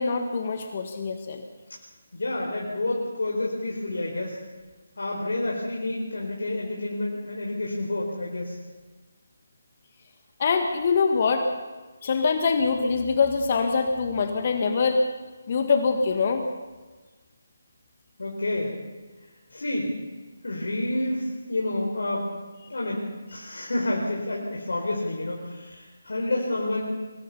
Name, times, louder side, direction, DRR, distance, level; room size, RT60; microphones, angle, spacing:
voice 1, 0.0-1.4 10.4-11.5 12.0-15.0 15.5-16.4, left 5 dB, 40° left, 5 dB, 1.8 m, -24 dB
voice 2, 2.1-4.4 5.0-8.6 18.2-18.7 19.5-19.9 20.4-22.3 22.7-26.8, left 1 dB, 70° left, -2 dB, 4.4 m, -29 dB
23.5 x 20.0 x 5.7 m, 1.3 s
figure-of-eight pair, 150°, 0 cm